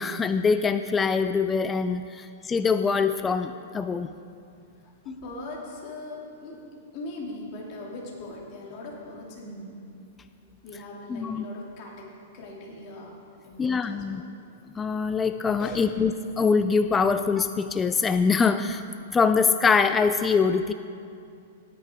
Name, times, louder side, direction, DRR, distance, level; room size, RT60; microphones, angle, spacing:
voice 1, 0.0-4.1 11.1-11.4 13.6-14.2 14.8-18.8 19.1-20.7, left 5 dB, 15° left, 9 dB, 0.3 m, -24 dB
voice 2, 4.8-6.6 6.9-9.7 10.6-12.1 12.3-13.1 13.4-14.2 15.6-16.0, left 2 dB, 40° left, -3 dB, 2.7 m, -40 dB
17.5 x 9.0 x 3.6 m, 2.4 s
hypercardioid pair, 145°, 0 cm